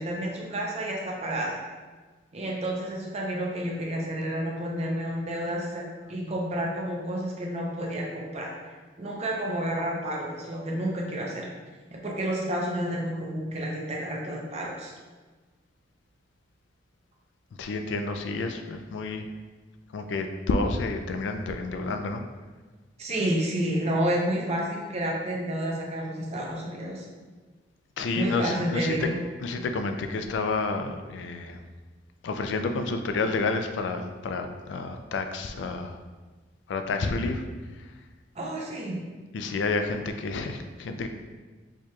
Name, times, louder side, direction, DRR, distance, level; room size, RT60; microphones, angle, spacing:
voice 1, 0.0-1.6 2.3-5.8 6.1-8.5 9.0-11.4 12.0-14.9 23.0-27.0 28.1-29.1 38.4-39.0, right 1 dB, 35° right, -2 dB, 0.6 m, -30 dB
voice 2, 17.6-19.3 19.9-22.2 28.0-29.1 29.4-31.6 32.2-36.0 36.7-37.4 39.3-41.1, left 3 dB, 80° left, 6 dB, 0.3 m, -29 dB
4.7 x 2.9 x 2.3 m, 1.3 s
head